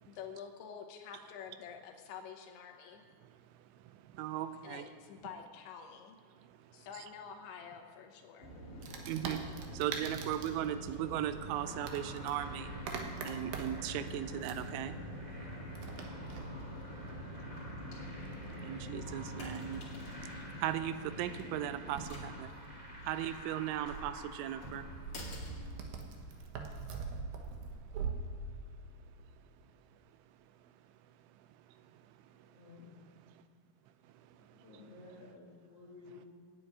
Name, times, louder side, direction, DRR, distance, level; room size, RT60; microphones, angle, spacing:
voice 1, 0.1-3.0 4.6-6.2 6.7-8.5, left 7 dB, 80° left, 3 dB, 3.2 m, -48 dB
voice 2, 4.2-4.8 9.1-9.4 9.8-12.7 13.3-14.9 18.7-19.8 20.6-22.3 23.1-24.1 24.4-24.8, right 12 dB, 90° right, 11 dB, 3.0 m, -37 dB
sound 1, 8.4-26.5, equal, 40° left, 1.6 m, -46 dB
Wood, 8.8-28.1, right 5 dB, 70° right, 2.4 m, -46 dB
sound 2, 11.3-25.7, equal, 20° right, 1.1 m, -53 dB
voice 3, 32.4-32.9 34.4-36.3, left 3 dB, 65° left, -4 dB, 1.5 m, -55 dB
9.4 x 8.6 x 9.1 m, 2.3 s
omnidirectional pair, 5.3 m